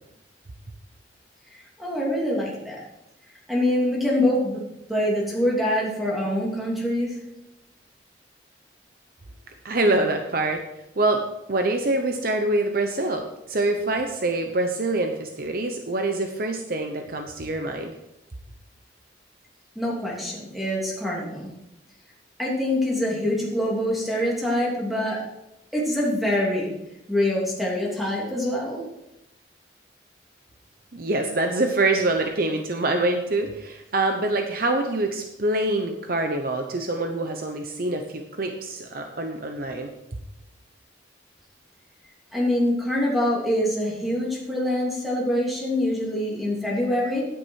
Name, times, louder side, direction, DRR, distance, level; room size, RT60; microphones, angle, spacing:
voice 1, 1.5-2.8 3.5-4.6 4.9-7.2 19.7-21.5 22.4-25.2 25.7-26.7 27.1-28.8 42.3-47.3, left 1 dB, ahead, -4 dB, 2.9 m, -25 dB
voice 2, 9.6-10.6 11.0-11.2 11.5-17.9 30.9-39.9, right 2 dB, 55° right, 4 dB, 0.8 m, -25 dB
9.8 x 9.0 x 4.7 m, 0.88 s
head